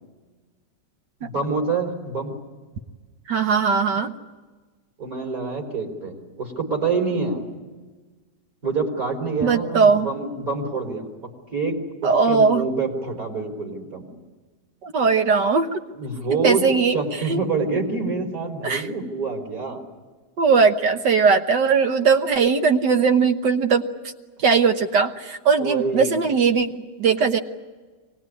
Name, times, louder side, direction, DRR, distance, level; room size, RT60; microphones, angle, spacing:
voice 1, 1.2-2.3 5.0-7.4 8.6-11.1 11.5-14.1 15.9-16.6 16.9-19.8 25.6-26.2, right 4 dB, 50° right, 1 dB, 4.8 m, -26 dB
voice 2, 3.3-4.1 9.4-10.1 12.0-12.7 14.8-15.8 16.3-17.4 18.6-18.9 20.4-23.9 24.4-27.4, right 5 dB, 80° right, 6 dB, 1.9 m, -19 dB
25.0 x 19.5 x 9.9 m, 1.3 s
omnidirectional pair, 1.9 m